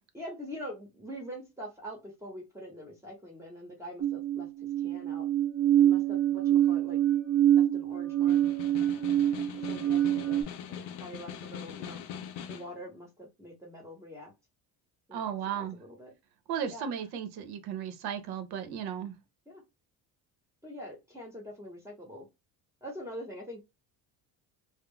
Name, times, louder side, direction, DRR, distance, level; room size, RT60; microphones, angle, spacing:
voice 1, 0.1-4.5 4.8-5.3 5.8-7.0 7.5-8.4 9.7-10.4 10.7-12.0 12.5-14.3 15.1-16.1 16.7-16.9 19.5-19.6 20.6-22.3 22.8-23.6, equal, 5° right, 1.0 m, -44 dB
sound 1, 4.0-10.4, right 11 dB, 35° right, 0.8 m, -26 dB
Snare drum, 8.1-12.8, left 8 dB, 90° left, 0.6 m, -42 dB
voice 2, 15.1-15.8 16.5-19.1, right 8 dB, 70° right, 0.8 m, -35 dB
2.3 x 2.0 x 3.6 m
cardioid pair, 125°, 39 cm